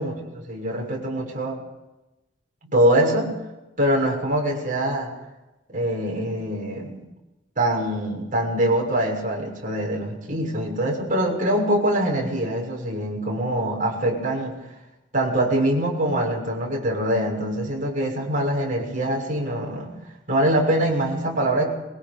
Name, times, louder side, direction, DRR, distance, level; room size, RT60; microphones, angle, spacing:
voice 1, 0.0-1.6 2.6-3.3 3.8-5.1 5.7-7.0 7.5-14.5 15.1-19.9 20.3-21.7, right 1 dB, 40° right, -1 dB, 6.8 m, -24 dB
27.5 x 23.5 x 5.4 m, 1.0 s
head